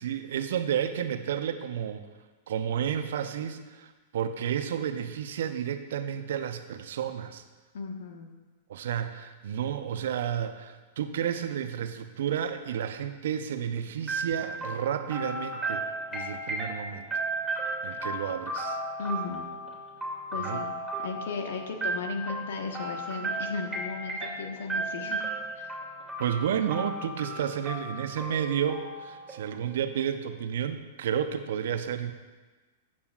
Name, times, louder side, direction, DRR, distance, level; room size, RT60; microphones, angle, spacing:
voice 1, 0.0-2.1 2.5-7.4 8.7-17.1 17.8-18.8 20.4-20.6 26.2-32.1, right 9 dB, 70° right, 9 dB, 0.7 m, -31 dB
voice 2, 7.7-8.3 19.0-19.5 20.3-20.7 21.0-25.2 25.5-25.7, left 4 dB, 70° left, 4 dB, 1.3 m, -35 dB
sound 1, 14.1-29.9, right 2 dB, 5° right, 2.4 m, -35 dB
13.5 x 8.4 x 2.5 m, 1.2 s
hypercardioid pair, 105°, 0 cm